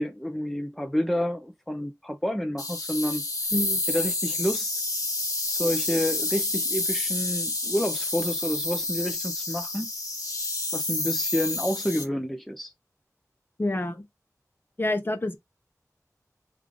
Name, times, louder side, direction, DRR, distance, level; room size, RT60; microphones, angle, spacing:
voice 1, 0.0-3.2 3.9-4.7 5.5-9.9 10.7-12.7, equal, ahead, 0.5 m, -29 dB
sound 1, 2.6-12.0, left 2 dB, 75° left, 1.0 m, -29 dB
voice 2, 13.6-14.0 14.8-15.4, left 2 dB, 35° left, 0.7 m, -27 dB
3.1 x 2.5 x 3.6 m
wide cardioid pair, 60°, 6 cm